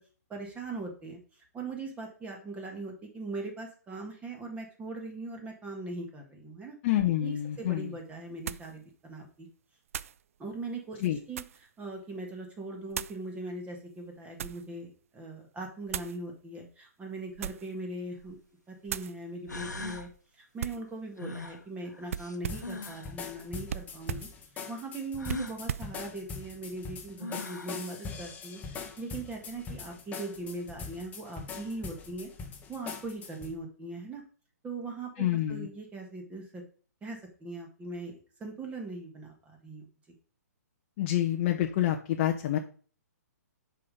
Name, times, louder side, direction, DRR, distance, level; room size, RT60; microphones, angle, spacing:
voice 1, 0.3-1.2 1.5-6.8 7.2-9.5 10.4-18.4 18.7-20.1 20.4-24.3 24.7-32.3 32.7-34.2 34.6-36.6 37.0-38.1 38.4-39.9, right 2 dB, 15° right, 2 dB, 1.7 m, -40 dB
voice 2, 6.8-7.9 11.0-11.2 35.2-35.7 41.0-42.6, left 12 dB, 35° left, 3 dB, 0.7 m, -27 dB
sound 1, 7.3-7.4 8.5-8.7 9.9-10.2 10.9-11.7 12.9-13.2 14.0-14.7 15.9-16.2 17.3-17.8 18.2-18.4 18.9-19.2 20.6-20.9 22.1-22.8 23.7-24.3 25.2-25.9, right 9 dB, 50° right, 0.3 m, -38 dB
sound 2, 18.0-18.1 19.0-19.1 19.5-20.1 21.2-23.1 25.2-25.6 26.8-26.9 27.2-27.8, left 2 dB, 90° left, 1.1 m, -40 dB
sound 3, 22.5-33.5, left 5 dB, 15° left, 1.1 m, -42 dB
6.8 x 5.2 x 5.3 m, 0.41 s
figure-of-eight pair, 130°, 9 cm